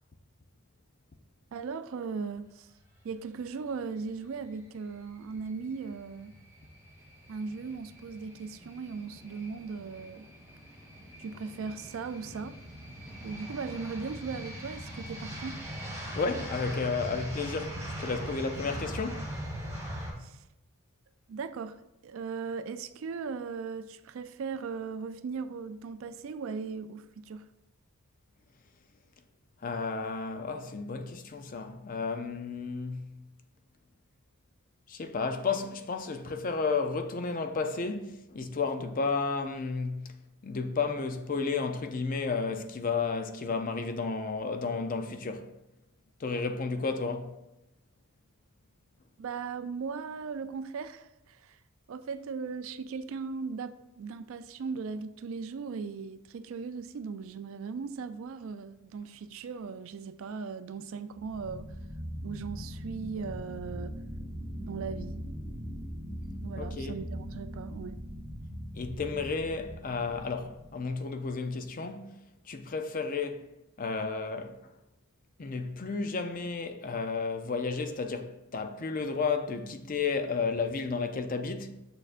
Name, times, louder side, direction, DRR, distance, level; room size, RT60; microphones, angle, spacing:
voice 1, 1.5-2.7 3.0-6.3 7.3-10.3 11.2-12.6 13.2-15.6 20.2-20.4 21.3-27.4 49.2-51.6 51.9-61.8 62.2-64.0 64.6-65.2 66.4-68.0, right 5 dB, 60° right, 0.3 m, -38 dB
sound 1, 4.3-20.1, equal, 10° right, 1.9 m, -42 dB
voice 2, 16.1-19.3 29.6-33.1 34.9-40.1 40.4-45.5 46.2-47.3 66.6-67.0 68.7-72.1 72.5-73.4 73.8-74.6 75.4-81.8, left 4 dB, 40° left, 0.4 m, -32 dB
sound 2, 61.1-70.9, equal, 5° left, 1.4 m, -40 dB
6.4 x 6.3 x 2.5 m
head